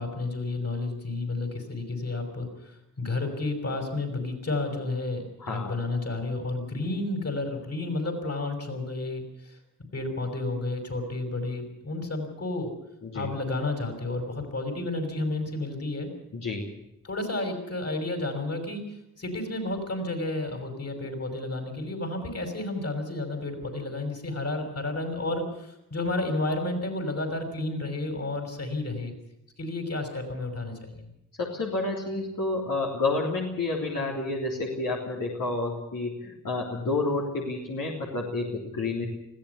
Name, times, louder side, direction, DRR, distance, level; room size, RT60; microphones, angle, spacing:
voice 1, 0.0-9.5 9.9-12.7 13.1-16.1 17.0-18.8 19.2-29.1 29.6-31.0, left 2 dB, 50° left, 5 dB, 6.1 m, -31 dB
voice 2, 5.4-5.7 13.0-13.3 16.3-16.7 31.4-39.1, left 3 dB, 80° left, -2 dB, 3.6 m, -30 dB
20.5 x 15.5 x 8.3 m, 0.84 s
cardioid pair, 75°, 33 cm